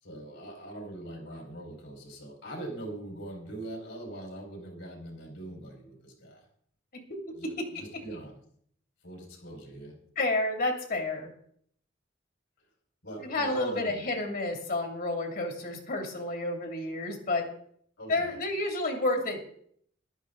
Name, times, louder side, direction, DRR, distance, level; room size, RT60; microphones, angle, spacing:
voice 1, 0.0-6.4 7.3-8.4 9.0-9.9 13.0-14.1 18.0-18.4, right 1 dB, 70° left, 1 dB, 4.8 m, -42 dB
voice 2, 7.4-7.8 10.2-11.3 13.2-17.5 18.1-19.4, left 2 dB, 50° left, 3 dB, 2.7 m, -30 dB
14.5 x 12.0 x 3.9 m, 0.64 s
head